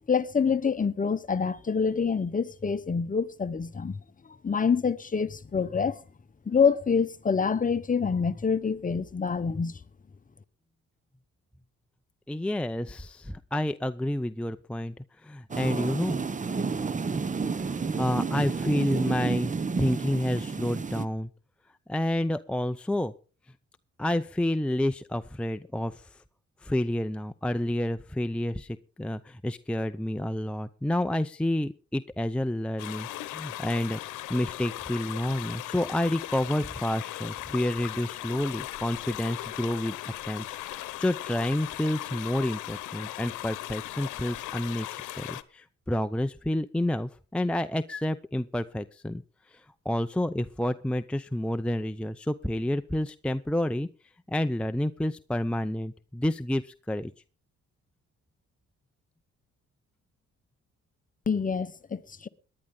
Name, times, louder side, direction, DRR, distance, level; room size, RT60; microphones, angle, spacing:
voice 1, 0.1-4.0 4.4-6.0 6.5-9.8 61.3-62.3, left 6 dB, 25° left, 1.0 m, -26 dB
voice 2, 12.3-14.9 15.2-16.2 18.0-21.3 21.9-23.1 24.0-26.1 26.6-34.0 34.3-40.0 40.2-49.2 49.5-53.9 54.3-57.1, left 1 dB, 5° left, 0.6 m, -29 dB
sound 1, 15.5-21.1, right 4 dB, 25° right, 0.9 m, -30 dB
sound 2, 32.8-45.4, left 15 dB, 90° left, 0.9 m, -38 dB
19.0 x 11.0 x 3.8 m
cardioid pair, 90°, 30 cm